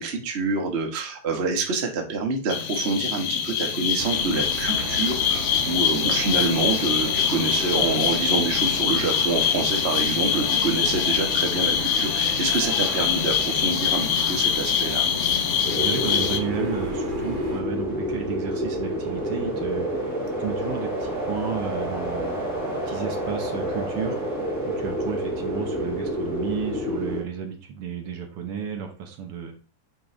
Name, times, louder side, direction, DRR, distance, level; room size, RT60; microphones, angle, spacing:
voice 1, 0.0-15.1, right 3 dB, 80° right, 2 dB, 0.5 m, -27 dB
sound 1, 2.5-16.4, left 8 dB, 75° left, 1.3 m, -24 dB
sound 2, 4.0-17.6, right 2 dB, 40° right, 0.7 m, -35 dB
sound 3, 15.6-27.2, equal, 5° left, 2.0 m, -28 dB
voice 2, 15.7-22.4 22.9-24.2 24.6-29.6, right 7 dB, 60° right, 4 dB, 1.6 m, -33 dB
8.8 x 4.5 x 3.3 m, 0.35 s
omnidirectional pair, 3.5 m